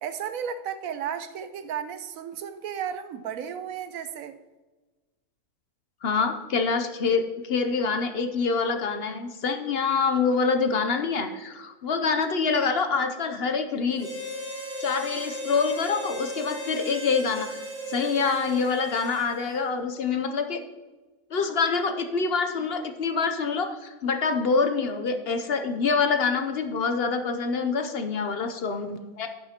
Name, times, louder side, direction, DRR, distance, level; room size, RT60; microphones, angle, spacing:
voice 1, 0.0-4.4, right 8 dB, 85° right, 1.1 m, -34 dB
voice 2, 6.0-14.1 14.8-17.6 17.9-20.6 21.3-29.3, left 5 dB, 55° left, 0.9 m, -26 dB
Harmonica, 14.0-19.6, equal, 55° right, 3.0 m, -36 dB
11.0 x 10.5 x 2.9 m
omnidirectional pair, 1.4 m